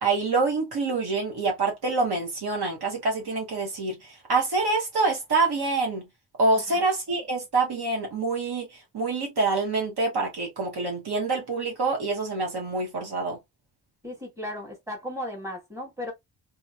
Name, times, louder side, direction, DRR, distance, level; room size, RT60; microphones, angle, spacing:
voice 1, 0.0-4.0 4.3-6.0 6.4-8.7 8.9-13.4, right 3 dB, 65° right, 1.2 m, -26 dB
voice 2, 14.0-16.1, left 1 dB, 5° right, 1.5 m, -35 dB
2.9 x 2.3 x 2.4 m
wide cardioid pair, 125°, 42 cm